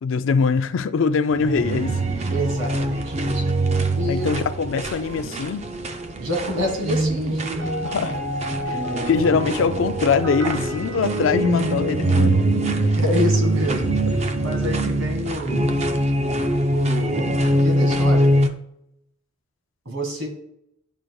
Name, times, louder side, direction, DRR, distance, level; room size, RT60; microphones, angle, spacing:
voice 1, 0.0-2.0 4.1-5.6 7.8-8.1 8.7-8.8 9.0-12.5, left 5 dB, 70° left, 0.4 m, -22 dB
sound 1, 1.3-18.5, right 1 dB, 30° right, 0.4 m, -23 dB
voice 2, 2.3-3.5 3.9-4.4 6.2-7.4 8.6-8.7 12.8-15.8 16.7-18.3 19.8-20.3, left 1 dB, 80° right, 1.8 m, -28 dB
sound 2, 7.6-11.9, left 1 dB, 60° right, 0.7 m, -33 dB
10.5 x 5.0 x 2.3 m
head